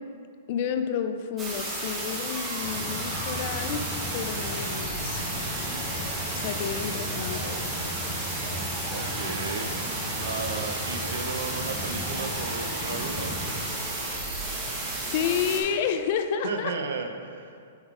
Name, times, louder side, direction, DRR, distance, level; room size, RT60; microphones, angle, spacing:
voice 1, 0.5-3.8 4.1-5.2 6.3-7.6 15.0-16.7, left 8 dB, 40° left, 8 dB, 0.4 m, -30 dB
sound 1, 1.4-15.6, right 2 dB, 15° right, 1.0 m, -32 dB
sound 2, 2.6-13.6, left 1 dB, 20° left, 0.7 m, -37 dB
voice 2, 8.9-9.8 10.2-13.3 16.4-17.6, right 4 dB, 75° right, 4 dB, 0.7 m, -34 dB
6.1 x 4.0 x 4.9 m, 2.2 s
hypercardioid pair, 160°, 0 cm